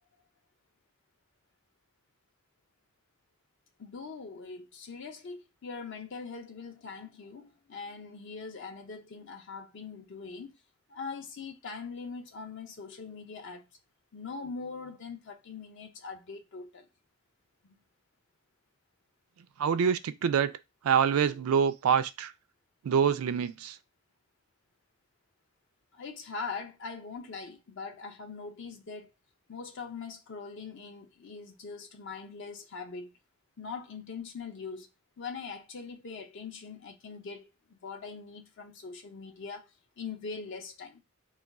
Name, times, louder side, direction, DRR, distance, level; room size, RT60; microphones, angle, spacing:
voice 1, 3.8-10.6 10.9-13.6 14.1-16.9 17.6-17.8 25.9-29.1 29.5-33.1 33.6-34.9 35.2-41.0, left 4 dB, 55° left, 0.5 m, -42 dB
voice 2, 19.6-20.5 20.8-22.3 22.8-23.8, right 7 dB, 75° right, 0.3 m, -26 dB
2.3 x 2.2 x 3.9 m
head